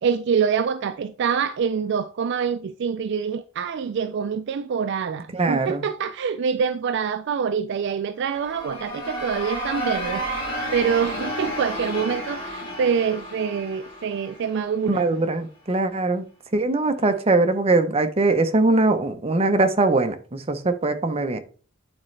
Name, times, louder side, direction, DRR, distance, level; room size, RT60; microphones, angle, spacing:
voice 1, 0.0-15.2, right 6 dB, 60° right, 0.3 m, -25 dB
voice 2, 5.3-5.8 14.9-16.2 16.5-21.4, right 2 dB, 30° right, 0.7 m, -21 dB
sound 1, 8.2-15.0, equal, 25° left, 3.2 m, -32 dB
8.8 x 4.2 x 3.2 m
head